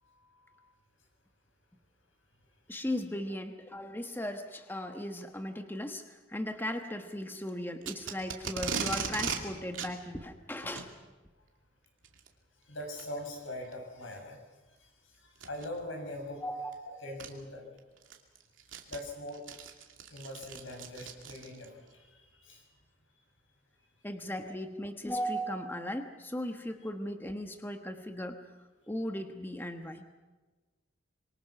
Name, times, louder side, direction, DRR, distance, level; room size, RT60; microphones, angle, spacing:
voice 1, 0.0-0.7 12.7-14.4 14.8-14.9 15.1-16.4 16.9-17.7 18.9-19.4 20.0-22.6, left 1 dB, 90° left, 2 dB, 7.2 m, -42 dB
voice 2, 2.7-10.9 16.4-17.0 24.0-28.5 28.9-30.0, equal, 10° left, 6 dB, 1.3 m, -37 dB
Packing tape duct tape, 7.8-9.4 9.7-9.9 10.6-10.9 12.0-12.3 13.0-13.1 13.7-13.8 15.4-15.7 16.7-16.8 17.2-17.3 17.8-21.7, right 6 dB, 85° right, 2.7 m, -37 dB
26.5 x 23.5 x 6.0 m, 1.3 s
head